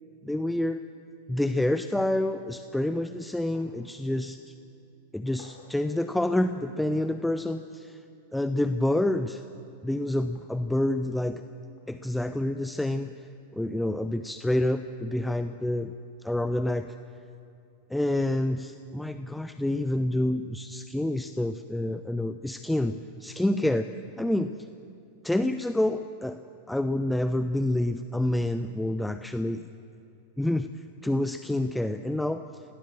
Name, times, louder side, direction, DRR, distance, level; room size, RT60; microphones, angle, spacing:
voice 1, 0.2-0.8 1.3-4.5 5.1-8.0 8.3-9.4 9.8-11.4 11.9-13.3 13.5-15.9 16.2-16.9 17.9-23.9 24.2-24.5 25.2-26.4 26.7-29.7 30.4-32.4, left 1 dB, 5° left, 10 dB, 0.7 m, -28 dB
sound 1, 3.5-3.9 4.2-4.3 5.4-5.8 7.0-7.1 8.8-9.2 10.3-10.5 11.8-11.9, left 5 dB, 35° left, 5.2 m, -55 dB
28.5 x 20.0 x 7.5 m, 2.6 s
figure-of-eight pair, 90°, 0 cm